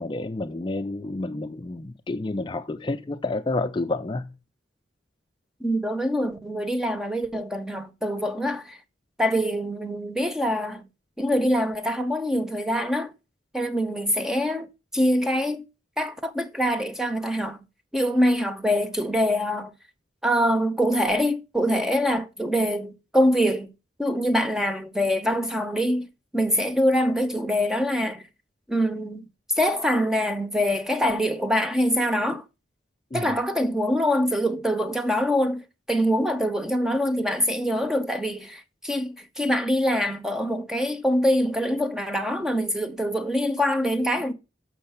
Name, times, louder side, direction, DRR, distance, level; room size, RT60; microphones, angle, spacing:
voice 1, 0.0-4.3 33.1-33.3, left 2 dB, 25° left, 0.4 m, -29 dB
voice 2, 5.6-8.8 9.2-10.9 11.2-13.1 13.5-15.6 16.0-17.6 17.9-19.7 20.2-23.7 24.0-26.1 26.3-28.2 28.7-29.2 29.6-32.4 33.1-44.3, equal, 5° right, 0.7 m, -24 dB
6.5 x 6.2 x 5.7 m
head